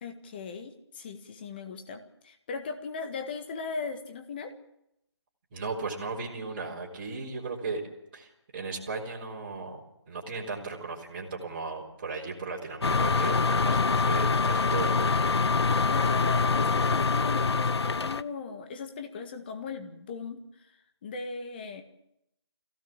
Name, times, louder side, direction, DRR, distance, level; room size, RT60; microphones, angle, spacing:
voice 1, 0.0-4.5 15.9-20.7 21.0-21.8, left 4 dB, 20° left, 6 dB, 1.7 m, -38 dB
voice 2, 5.5-7.8 8.1-9.8 10.1-15.3, right 4 dB, 25° right, -5 dB, 3.8 m, -36 dB
sound 1, 12.8-18.2, left 4 dB, 70° left, 0.8 m, -25 dB
23.0 x 16.5 x 7.5 m, 0.81 s
figure-of-eight pair, 165°, 14 cm